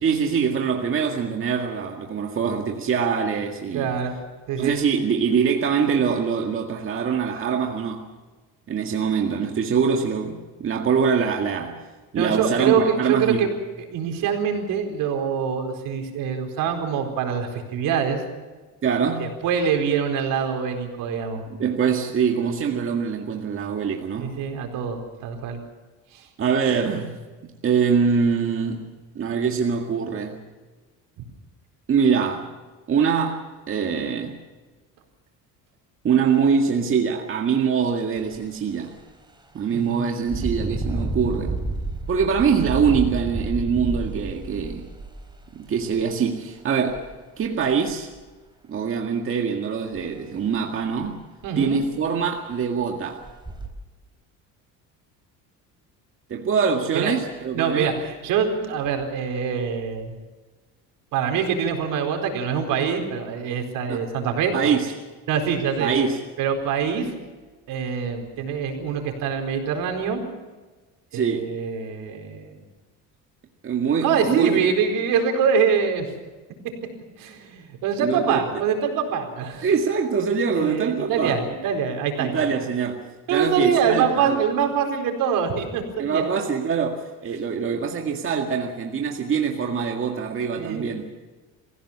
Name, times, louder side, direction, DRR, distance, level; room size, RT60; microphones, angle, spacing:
voice 1, 0.0-4.0 4.6-8.0 8.7-11.8 12.1-13.5 18.8-19.3 21.6-24.4 26.4-27.2 27.6-28.9 29.2-30.4 31.9-32.5 32.9-34.4 36.0-39.0 39.5-41.5 42.1-44.9 45.5-47.1 47.4-48.1 48.7-51.2 51.6-53.2 56.3-57.9 63.9-64.0 64.5-64.9 65.8-66.2 71.1-71.6 73.6-74.6 78.0-78.4 79.6-81.4 82.2-83.0 83.3-84.4 86.0-91.1, right 6 dB, 40° right, 2 dB, 2.0 m, -24 dB
voice 2, 3.7-4.2 4.5-4.8 12.1-13.5 13.8-18.2 19.2-21.4 24.1-25.6 26.1-26.3 39.7-40.1 51.4-51.8 56.9-57.1 57.5-60.1 61.1-64.5 65.3-65.9 66.4-67.1 67.7-70.2 71.1-72.5 74.0-76.1 77.2-79.7 80.5-82.5 83.3-86.2 90.6-90.9, right 7 dB, 70° right, 4 dB, 4.5 m, -24 dB
Engine, 38.2-38.4 38.8-39.0 40.2-46.0 46.9-47.0 47.4-48.2 49.9-50.1 50.4-50.5 51.0-51.1 51.4-51.9 52.5-52.6 53.2-53.7, right 2 dB, 15° right, 3.7 m, -30 dB
25.0 x 16.0 x 7.4 m, 1.3 s
cardioid pair, 125°, 34 cm